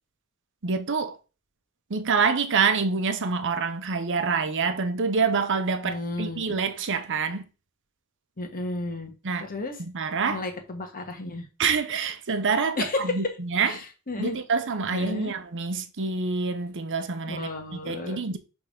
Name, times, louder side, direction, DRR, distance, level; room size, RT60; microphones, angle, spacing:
voice 1, 0.6-1.2 1.9-7.4 9.2-9.5 9.8-10.4 11.6-13.8 14.2-18.4, right 5 dB, 60° right, 0.8 m, -26 dB
voice 2, 5.8-6.6 8.4-9.1 9.4-9.8 10.3-11.5 12.8-13.3 13.6-14.4 14.9-15.3 17.3-18.2, left 2 dB, 40° left, 1.4 m, -32 dB
5.8 x 3.5 x 5.0 m
head